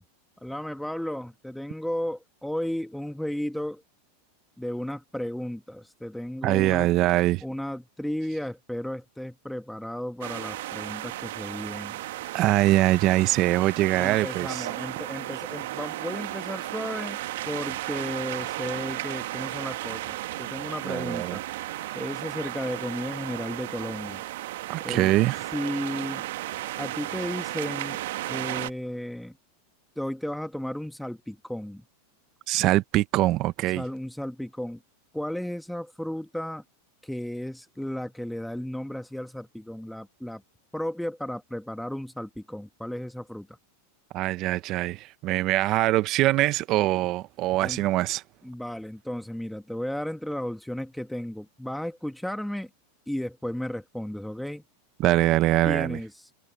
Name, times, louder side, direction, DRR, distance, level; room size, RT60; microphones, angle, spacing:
voice 1, 0.4-3.8 4.6-6.9 7.4-12.0 13.9-17.2 17.4-21.4 21.9-24.2 24.8-25.2 25.5-26.2 26.8-28.0 28.3-29.4 29.9-31.8 33.7-34.8 35.1-36.6 37.0-40.4 40.7-43.6 47.6-47.8 48.4-52.7 53.1-54.6 55.6-56.3, equal, ahead, 1.6 m, -34 dB
voice 2, 6.4-7.4 12.3-14.7 20.8-21.4 24.7-25.4 32.5-33.8 44.1-48.2 55.0-56.0, right 16 dB, 45° right, 0.8 m, -23 dB
sound 1, 10.2-28.7, right 16 dB, 70° right, 1.2 m, -34 dB
supercardioid pair, 130°, 0 cm